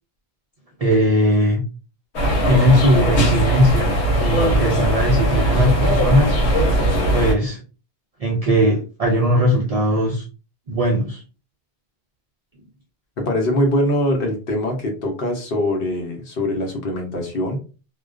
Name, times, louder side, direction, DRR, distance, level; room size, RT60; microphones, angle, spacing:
voice 1, 0.8-1.6 2.5-6.4 7.1-7.6 8.2-10.3 10.7-11.2, equal, 55° right, 0 dB, 0.4 m, -19 dB
sound 1, 2.1-7.3, right 1 dB, 85° left, 1.1 m, -19 dB
voice 2, 13.2-17.6, left 1 dB, 60° left, 2 dB, 0.9 m, -22 dB
2.3 x 2.2 x 2.4 m, 0.34 s
omnidirectional pair, 1.1 m